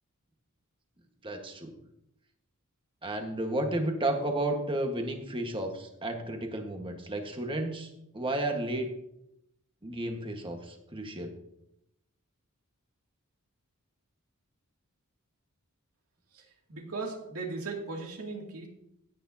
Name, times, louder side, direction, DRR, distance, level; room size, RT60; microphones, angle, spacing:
voice 1, 1.2-1.7 3.0-8.9 9.8-11.3, right 1 dB, 25° right, 4 dB, 1.5 m, -32 dB
voice 2, 16.7-18.7, right 3 dB, 70° right, 0 dB, 2.6 m, -37 dB
16.5 x 9.4 x 2.8 m, 0.81 s
head